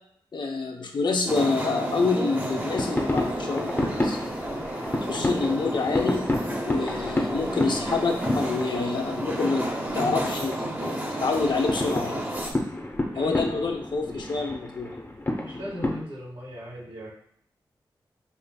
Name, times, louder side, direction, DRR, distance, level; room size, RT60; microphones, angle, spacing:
voice 1, 0.3-4.2 5.0-6.2 6.7-9.7 9.9-12.3 13.2-14.9, left 4 dB, 60° left, 3 dB, 0.7 m, -27 dB
sound 1, 1.3-12.5, right 1 dB, 20° right, 0.7 m, -32 dB
sound 2, 2.5-16.0, left 1 dB, 25° left, 0.8 m, -31 dB
voice 2, 14.1-14.5 15.4-17.1, equal, 80° right, -4 dB, 1.4 m, -39 dB
5.5 x 2.5 x 2.3 m, 0.69 s
cardioid pair, 45°, 9 cm